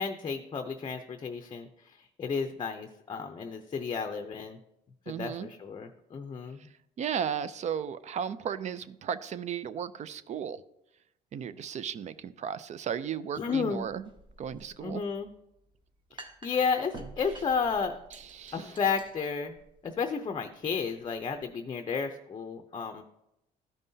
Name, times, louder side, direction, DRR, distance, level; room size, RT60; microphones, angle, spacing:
voice 1, 0.0-4.6 5.1-6.6 13.4-13.9 14.8-15.3 16.1-18.0 18.5-19.6 19.8-23.0, left 5 dB, 30° left, 6 dB, 0.6 m, -32 dB
voice 2, 5.1-5.5 7.0-10.6 11.3-14.0 14.4-15.0 18.3-18.7, right 8 dB, 45° right, 15 dB, 0.5 m, -35 dB
sound 1, 13.7-21.5, right 2 dB, 30° right, 1.1 m, -51 dB
13.5 x 5.4 x 2.7 m, 0.84 s
cardioid pair, 110°, 17 cm